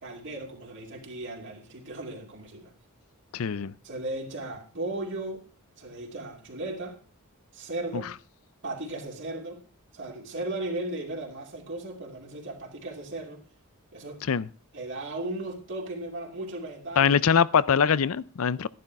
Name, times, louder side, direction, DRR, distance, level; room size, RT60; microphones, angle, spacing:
voice 1, 0.0-2.7 3.8-5.5 5.8-7.0 7.5-8.1 8.6-9.6 9.9-13.4 13.9-14.2 14.7-17.2, right 2 dB, 55° right, 2.7 m, -36 dB
voice 2, 3.3-3.7 7.9-8.0 14.2-14.5 17.0-18.7, left 7 dB, 70° left, 0.5 m, -23 dB
12.0 x 11.0 x 4.6 m
head